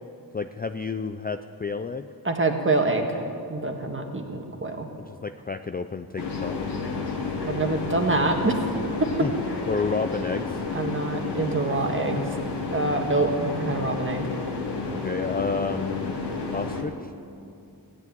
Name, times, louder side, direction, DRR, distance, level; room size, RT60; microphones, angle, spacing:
voice 1, 0.3-2.1 5.0-6.6 9.2-9.3 9.7-10.6 14.9-16.2 16.5-17.1, left 4 dB, 25° left, 8 dB, 0.4 m, -30 dB
voice 2, 2.3-3.2 3.5-4.9 7.4-8.6 10.7-12.3 12.7-14.3, right 2 dB, 30° right, 3 dB, 1.6 m, -26 dB
sound 1, 6.2-16.8, left 4 dB, 80° left, 1.9 m, -31 dB
16.0 x 8.5 x 9.2 m, 2.6 s
wide cardioid pair, 105°, 41 cm